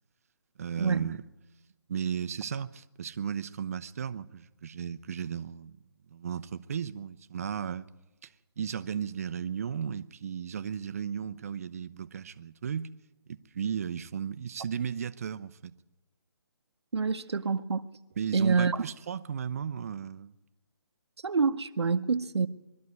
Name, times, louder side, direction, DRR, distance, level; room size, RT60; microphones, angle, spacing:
voice 1, 0.6-1.3 1.9-5.8 6.1-7.9 8.2-8.3 8.6-12.9 13.3-15.7 18.2-20.3, right 8 dB, 35° right, 0.6 m, -35 dB
voice 2, 16.9-17.9 18.3-18.8 21.2-22.5, right 5 dB, 85° right, 0.9 m, -27 dB
21.5 x 13.0 x 9.4 m
hypercardioid pair, 165°, 14 cm